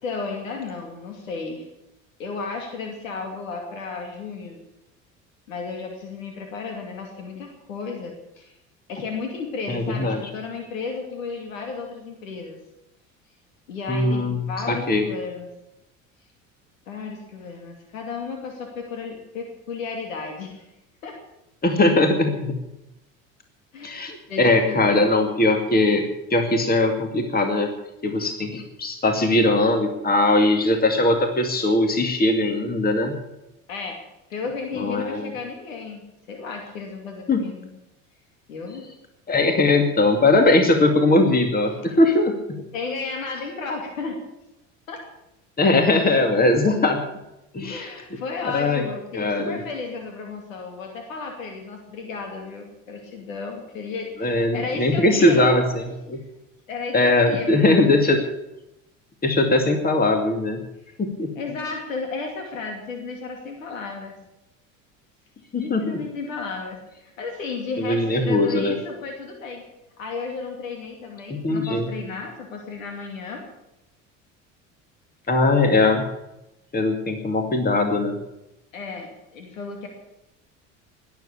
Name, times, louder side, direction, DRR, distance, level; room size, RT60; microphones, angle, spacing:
voice 1, 0.0-1.6 2.2-4.6 5.5-8.5 8.9-12.6 13.7-15.5 16.9-20.7 21.0-21.2 23.7-25.1 33.7-34.0 34.3-37.7 38.5-38.8 42.7-44.2 44.9-45.0 47.6-55.5 56.7-58.0 61.3-64.1 65.5-69.6 70.0-73.4 78.7-79.9, left 4 dB, 85° left, 3 dB, 2.6 m, -33 dB
voice 2, 9.7-10.2 13.9-15.0 21.6-22.6 23.8-27.7 28.0-33.2 34.8-35.3 37.3-37.4 39.3-42.6 45.6-47.0 47.5-47.9 48.5-48.8 49.1-49.6 54.2-56.2 56.9-58.2 59.2-60.6 61.0-61.3 65.5-66.0 67.8-68.8 71.3-71.9 75.3-76.0 76.7-78.2, left 2 dB, 25° left, 5 dB, 2.4 m, -20 dB
20.0 x 7.9 x 8.5 m, 0.89 s
hypercardioid pair, 75°, 39 cm